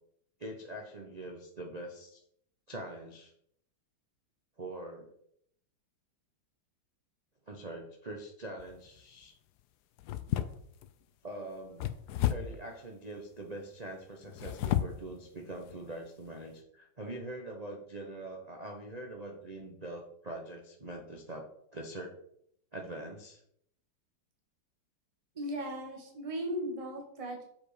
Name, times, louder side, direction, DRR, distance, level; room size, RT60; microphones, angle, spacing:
voice 1, 0.4-2.2 2.7-3.3 4.6-5.1 7.5-9.3 11.2-11.9 12.3-22.1 22.7-23.4, right 1 dB, 35° right, 0 dB, 0.6 m, -43 dB
sound 1, 8.6-9.0 10.0-10.9 11.8-12.7 14.2-15.1 15.6-15.7 16.3-16.4, left 12 dB, 75° left, 0.9 m, -32 dB
voice 2, 25.3-27.4, equal, 20° right, 0 dB, 1.5 m, -37 dB
7.1 x 5.0 x 4.9 m, 0.70 s
omnidirectional pair, 2.2 m